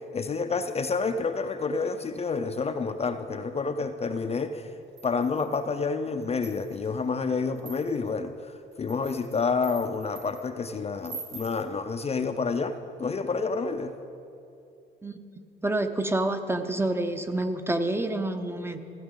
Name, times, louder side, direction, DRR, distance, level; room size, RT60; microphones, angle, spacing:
voice 1, 0.1-4.7 5.0-13.9, left 4 dB, 30° left, 8 dB, 0.5 m, -29 dB
sound 1, 5.0-5.7 6.2-6.9 7.6-8.1 8.7-10.4 11.0-11.6, right 4 dB, 90° right, 2.5 m, -44 dB
voice 2, 15.6-18.8, right 2 dB, 10° right, 7 dB, 0.7 m, -28 dB
15.5 x 10.0 x 3.8 m, 2.7 s
cardioid pair, 90°, 20 cm